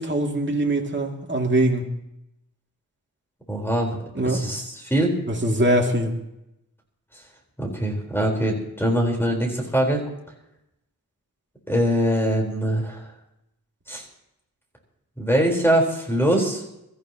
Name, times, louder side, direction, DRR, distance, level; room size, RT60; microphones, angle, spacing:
voice 1, 0.0-1.9 4.1-4.4 5.3-6.1, right 1 dB, 30° right, 1 dB, 2.4 m, -22 dB
voice 2, 3.5-4.0 4.2-5.1 7.6-10.0 11.7-13.0 13.9-14.0 15.2-16.6, right 1 dB, 5° left, 0 dB, 4.1 m, -22 dB
24.0 x 14.5 x 2.9 m, 0.85 s
wide cardioid pair, 90°, 36 cm